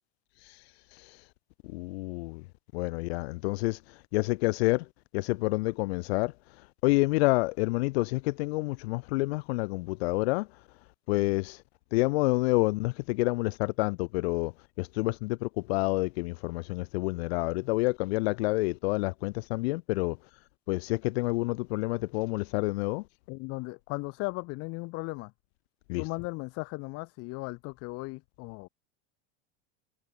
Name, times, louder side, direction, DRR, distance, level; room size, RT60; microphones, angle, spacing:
voice 1, 0.4-1.3 1.6-2.4 2.7-4.9 5.1-10.5 11.1-11.6 11.9-20.2 20.7-23.0 25.9-26.1, left 24 dB, 75° left, 0.5 m, -29 dB
voice 2, 23.3-25.3 26.0-28.7, left 26 dB, 45° left, 1.3 m, -37 dB
supercardioid pair, 150°, 32 cm